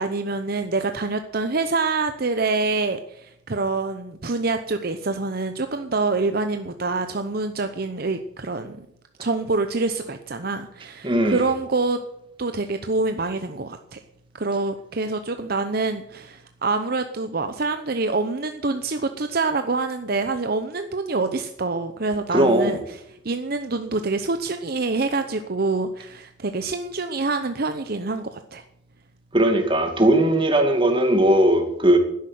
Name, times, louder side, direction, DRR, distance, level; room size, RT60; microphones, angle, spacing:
voice 1, 0.0-8.9 9.2-12.0 12.4-14.0 14.4-28.6, right 3 dB, 55° right, 8 dB, 0.8 m, -26 dB
voice 2, 11.0-11.4 22.3-22.8 29.3-32.0, right 1 dB, 25° right, 5 dB, 2.4 m, -18 dB
12.0 x 10.5 x 9.3 m, 0.79 s
head